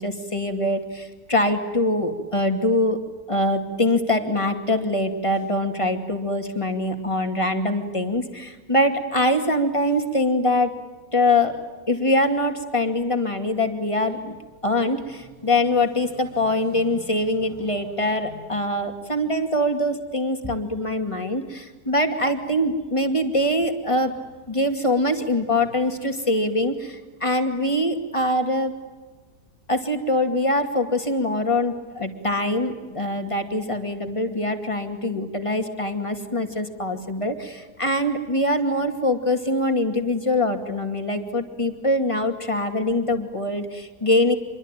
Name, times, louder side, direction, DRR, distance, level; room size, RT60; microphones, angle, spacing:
voice 1, 0.0-3.0 3.3-10.7 11.1-11.6 11.9-14.4 14.6-24.2 24.5-28.7 29.7-44.4, left 1 dB, 15° left, 6 dB, 2.4 m, -23 dB
27.5 x 23.0 x 9.0 m, 1.3 s
omnidirectional pair, 1.9 m